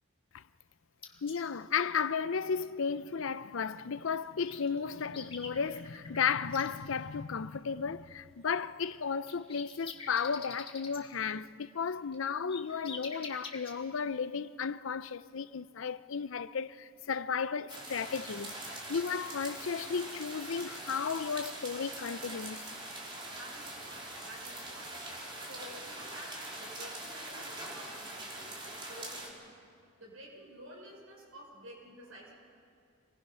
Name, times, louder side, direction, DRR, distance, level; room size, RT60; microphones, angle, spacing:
sound 1, 1.0-1.4 4.1-4.2 4.4-6.7 8.9-11.0 11.9-13.7, left 5 dB, 25° left, 1.9 m, -45 dB
voice 1, 1.2-22.7, left 6 dB, 70° left, 0.6 m, -34 dB
sound 2, 17.7-29.3, right 1 dB, 25° right, 3.1 m, -43 dB
voice 2, 23.3-32.3, right 1 dB, 75° right, 5.8 m, -51 dB
27.5 x 20.5 x 5.6 m
head